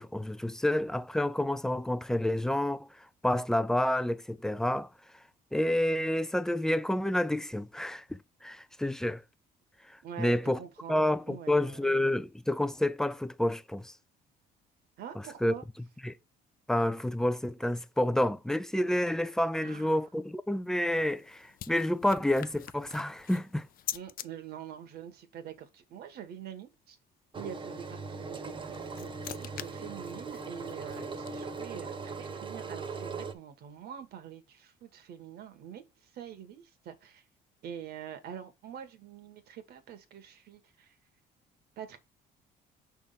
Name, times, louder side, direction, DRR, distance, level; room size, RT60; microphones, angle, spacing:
voice 1, 0.0-4.9 5.5-9.2 10.2-10.6 10.9-13.9 15.4-15.5 16.0-16.2 16.7-23.7, left 1 dB, 5° left, 0.5 m, -29 dB
voice 2, 10.0-11.9 15.0-15.6 19.6-20.0 23.9-27.0 27.3-37.2 37.6-41.0 41.8-42.0, right 9 dB, 70° right, 1.5 m, -45 dB
sound 1, 20.6-24.3 28.4-31.8, left 12 dB, 55° left, 0.6 m, -45 dB
Engine, 27.3-33.3, right 4 dB, 30° right, 1.2 m, -40 dB
6.1 x 3.6 x 5.7 m
cardioid pair, 110°, 17 cm